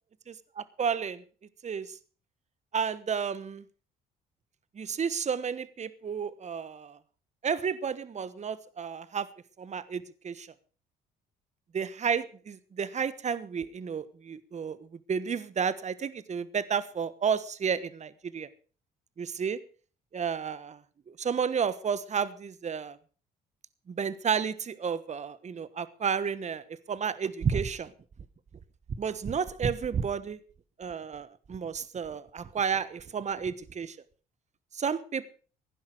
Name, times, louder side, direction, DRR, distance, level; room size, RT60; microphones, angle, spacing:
voice 1, 0.3-1.2 1.6-1.9 2.7-3.6 4.8-7.0 7.4-9.3 9.6-10.5 11.7-14.8 15.1-18.5 19.2-19.6 20.1-20.8 21.2-23.0 23.9-26.6 26.9-27.9 29.0-30.4 30.8-34.0 34.7-35.3, right 6 dB, 40° right, 16 dB, 1.2 m, -31 dB
16.0 x 10.5 x 6.4 m, 0.40 s
supercardioid pair, 65°, 18 cm